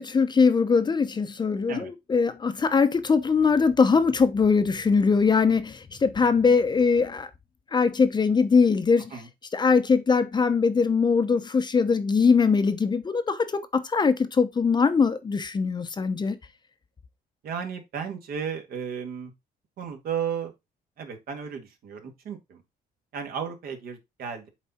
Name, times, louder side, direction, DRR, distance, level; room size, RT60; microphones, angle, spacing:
voice 1, 0.0-7.3 7.7-9.2 9.5-16.4, left 5 dB, 25° left, 0.8 m, -22 dB
voice 2, 17.4-19.3 19.8-20.5 21.0-22.6 23.1-24.5, right 7 dB, 60° right, 2.0 m, -34 dB
7.3 x 4.1 x 4.3 m
cardioid pair, 110°, 17 cm